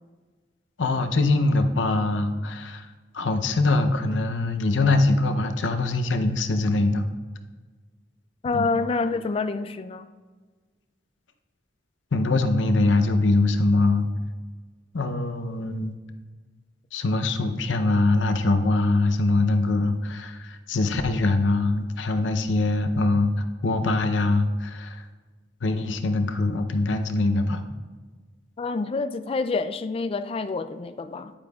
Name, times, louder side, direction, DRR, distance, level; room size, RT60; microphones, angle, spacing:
voice 1, 0.8-2.9 3.1-7.1 8.5-8.7 12.1-14.1 14.9-15.9 16.9-23.3 23.6-25.0 25.6-27.6, left 2 dB, 85° left, 7 dB, 0.7 m, -23 dB
voice 2, 8.4-10.1 28.6-31.3, left 4 dB, 30° left, 10 dB, 0.3 m, -27 dB
10.0 x 8.6 x 2.3 m, 1.4 s
head